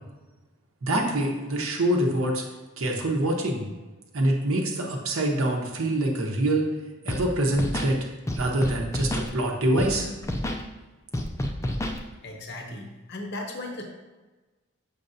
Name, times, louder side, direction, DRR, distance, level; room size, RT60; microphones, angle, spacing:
voice 1, 0.8-2.4 2.8-3.6 4.1-6.7 7.0-8.0 8.3-10.1, right 1 dB, 80° right, 0 dB, 0.9 m, -25 dB
Scratching (performance technique), 7.1-7.2 7.5-7.9 8.3-9.3 9.8-9.9 10.2-10.6 11.1-12.0, left 1 dB, 15° left, 0.3 m, -28 dB
voice 2, 12.2-13.8, left 2 dB, 50° left, 2 dB, 0.7 m, -36 dB
6.6 x 5.4 x 2.7 m, 1.2 s
head